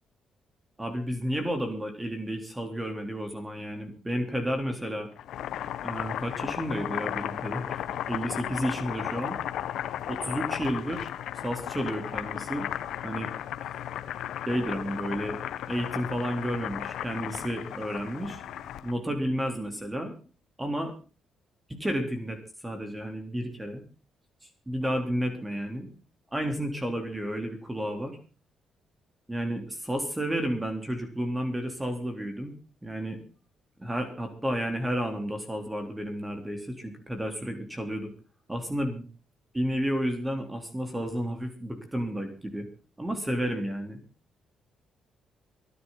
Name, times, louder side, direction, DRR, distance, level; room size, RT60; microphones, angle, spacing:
voice 1, 0.8-5.1 5.8-9.4 10.1-11.1 11.4-12.7 13.0-13.3 14.5-15.4 15.7-18.4 18.8-20.2 20.6-20.9 21.7-23.8 24.7-25.9 26.3-28.2 29.3-33.2 33.8-38.1 38.5-39.1 39.5-42.7 43.0-44.0, equal, 10° right, 5 dB, 3.6 m, -31 dB
Boiling, 5.1-18.9, left 11 dB, 75° left, 1.2 m, -35 dB
23.0 x 11.5 x 4.1 m, 0.36 s
cardioid pair, 90°, 0 cm